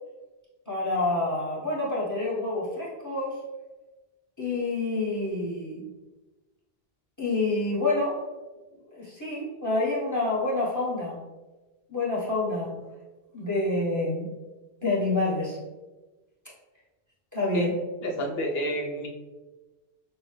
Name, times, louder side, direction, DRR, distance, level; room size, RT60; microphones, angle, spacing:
voice 1, 0.7-3.4 4.4-5.8 7.2-8.2 8.9-11.2 11.9-12.7 13.3-14.3 14.8-15.6 17.3-17.8, left 2 dB, 15° left, -5 dB, 1.0 m, -27 dB
voice 2, 18.0-19.1, equal, 70° left, 1 dB, 0.9 m, -29 dB
6.2 x 2.2 x 3.1 m, 1.2 s
omnidirectional pair, 1.1 m